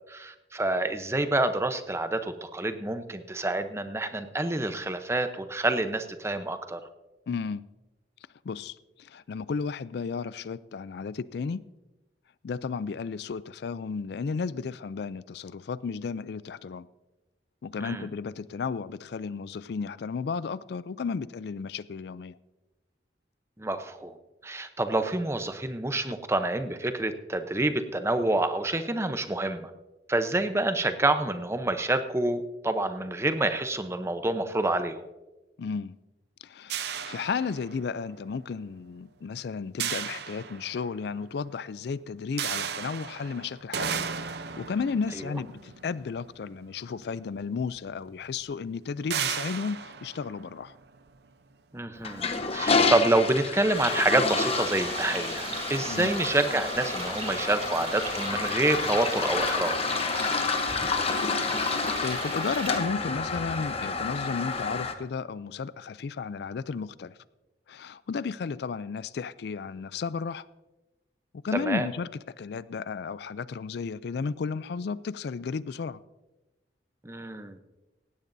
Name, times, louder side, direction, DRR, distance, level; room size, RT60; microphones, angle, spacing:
voice 1, 0.1-6.8 17.8-18.1 23.6-24.1 24.4-29.7 30.1-35.0 51.7-59.8 71.7-71.9 77.0-77.6, right 2 dB, 15° right, 0.8 m, -27 dB
voice 2, 7.3-7.7 8.4-11.6 12.4-16.9 17.6-22.4 35.6-36.0 36.4-44.1 44.6-50.8 55.9-56.1 61.7-67.2 67.7-70.5 71.3-72.1 72.4-76.0, left 5 dB, 65° left, 0.4 m, -33 dB
sound 1, 36.7-38.1 39.8-41.1 42.4-46.8 47.8-47.9 48.2-48.4 49.1-51.1, right 7 dB, 65° right, 0.7 m, -35 dB
Toilet flush, 52.0-64.9, left 4 dB, 35° left, 1.0 m, -29 dB
sound 2, 53.7-62.8, right 3 dB, 40° right, 3.5 m, -38 dB
18.0 x 16.0 x 2.7 m
head